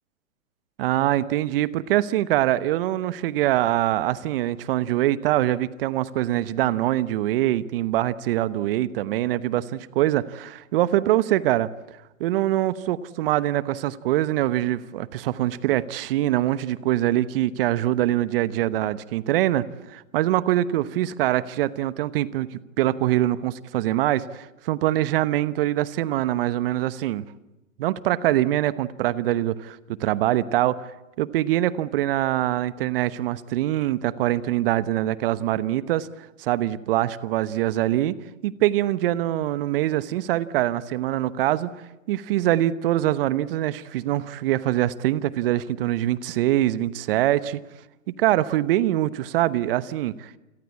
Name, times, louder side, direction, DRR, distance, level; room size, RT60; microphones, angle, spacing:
voice 1, 0.8-11.7 12.2-27.2 27.8-30.8 31.2-36.1 36.4-38.2 38.4-41.7 42.1-47.6 48.1-50.4, right 14 dB, 45° right, 16 dB, 1.1 m, -24 dB
28.5 x 22.0 x 8.5 m, 0.99 s
hypercardioid pair, 120°, 41 cm